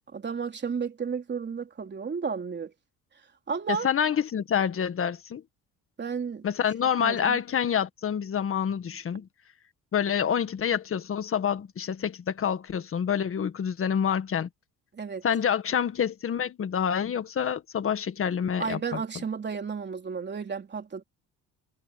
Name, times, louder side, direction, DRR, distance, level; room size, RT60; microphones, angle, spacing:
voice 1, 0.1-2.7 3.5-3.9 6.0-6.5 7.0-7.4 14.9-15.3 18.6-21.0, right 6 dB, 35° right, 3.4 m, -32 dB
voice 2, 3.7-5.4 6.4-9.3 9.9-14.5 15.2-19.0, left 8 dB, 40° left, 1.8 m, -27 dB
cardioid pair, 110°, 32 cm